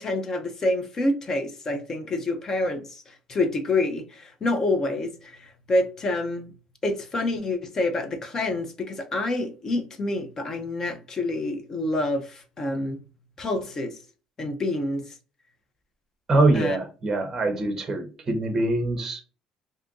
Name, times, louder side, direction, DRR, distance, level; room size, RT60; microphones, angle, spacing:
voice 1, 0.0-6.5 6.8-13.0 13.4-14.0 14.4-15.0 16.5-16.8, left 2 dB, 25° left, 0.5 m, -27 dB
voice 2, 16.3-19.2, right 2 dB, 20° right, 0.7 m, -23 dB
2.6 x 2.5 x 3.6 m
cardioid pair, 165°, 2 cm